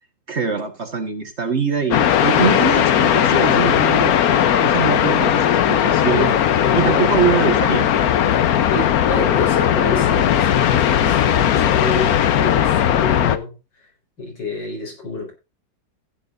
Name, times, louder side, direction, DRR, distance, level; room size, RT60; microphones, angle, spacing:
voice 1, 0.3-6.3 6.7-7.9, right 6 dB, 40° right, 1.8 m, -23 dB
sound 1, 1.9-13.4, left 10 dB, 65° left, 1.2 m, -17 dB
voice 2, 6.2-7.1 8.3-8.4 8.7-13.9 14.2-15.3, left 3 dB, 80° left, 4.8 m, -28 dB
15.5 x 9.2 x 2.6 m
omnidirectional pair, 1.9 m